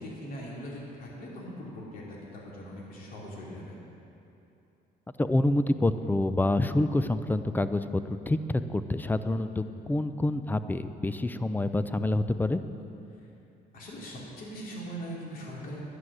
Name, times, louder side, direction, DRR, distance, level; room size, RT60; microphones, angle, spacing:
voice 1, 0.0-3.8 13.7-15.8, equal, 55° left, -4 dB, 2.7 m, -41 dB
voice 2, 5.2-8.4 8.7-12.6, left 2 dB, 10° left, 11 dB, 0.4 m, -27 dB
11.0 x 9.8 x 6.3 m, 2.8 s
cardioid pair, 110°, 17 cm